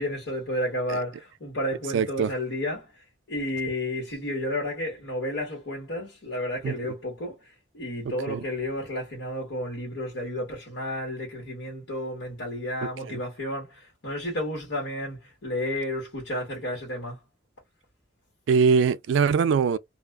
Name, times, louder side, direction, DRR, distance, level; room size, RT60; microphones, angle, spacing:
voice 1, 0.0-2.9 3.3-17.2, left 1 dB, 70° left, 1.3 m, -32 dB
voice 2, 1.9-2.3 6.6-6.7 8.3-8.4 13.1-13.2 18.5-19.8, right 6 dB, 70° right, 0.3 m, -22 dB
2.4 x 2.3 x 2.3 m
head